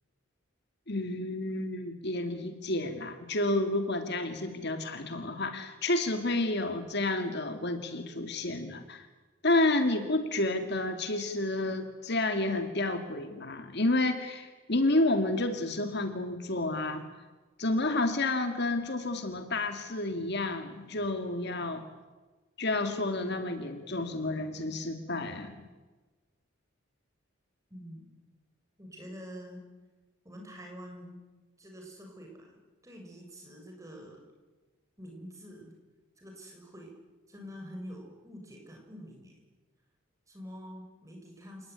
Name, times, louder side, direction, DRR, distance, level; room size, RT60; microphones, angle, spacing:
voice 1, 0.9-9.1 9.4-17.1 17.6-21.8 22.6-25.5, left 2 dB, 50° left, 7 dB, 2.3 m, -30 dB
voice 2, 27.7-28.0 28.8-29.6 30.2-31.2 31.6-32.6 32.8-34.2 35.0-35.7 36.2-36.9 37.3-39.4 40.3-41.7, equal, 15° right, 1 dB, 6.7 m, -46 dB
29.0 x 18.5 x 9.8 m, 1.3 s
head